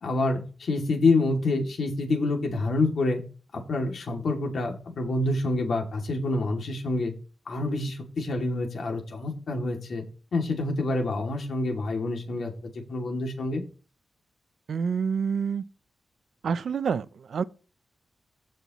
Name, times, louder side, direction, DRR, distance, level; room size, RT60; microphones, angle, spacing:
voice 1, 0.0-3.2 3.5-7.1 7.5-10.0 10.3-12.5 12.9-13.6, left 2 dB, 70° left, 2.5 m, -27 dB
voice 2, 14.7-15.6 16.4-17.4, right 6 dB, 75° right, 0.5 m, -27 dB
15.0 x 5.6 x 3.1 m
cardioid pair, 90°, 0 cm